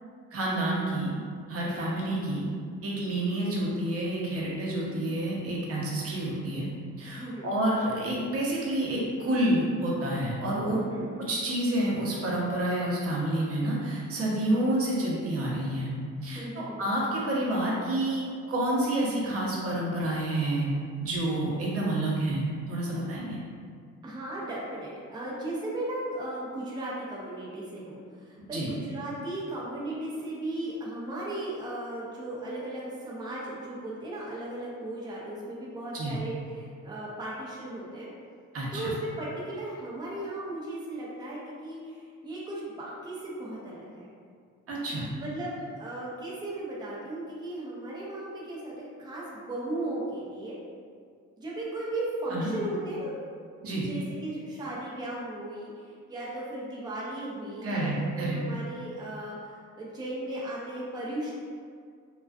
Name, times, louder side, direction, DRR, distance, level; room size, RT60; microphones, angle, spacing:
voice 1, 0.3-1.1 1.5-2.5 2.8-6.7 7.0-10.9 11.3-15.9 16.2-20.7 21.0-23.4 28.5-28.7 35.9-36.2 38.5-38.9 44.7-45.1 52.3-52.5 53.6-53.9 57.6-58.4, right 1 dB, 50° right, -4 dB, 0.7 m, -29 dB
voice 2, 7.1-7.5 10.7-11.1 14.5-14.8 16.3-16.9 24.0-38.1 38.7-44.1 45.1-50.6 51.4-53.1 53.8-61.3, right 1 dB, 15° right, -6 dB, 0.5 m, -36 dB
2.4 x 2.3 x 2.3 m, 2.1 s
cardioid pair, 90°, 30 cm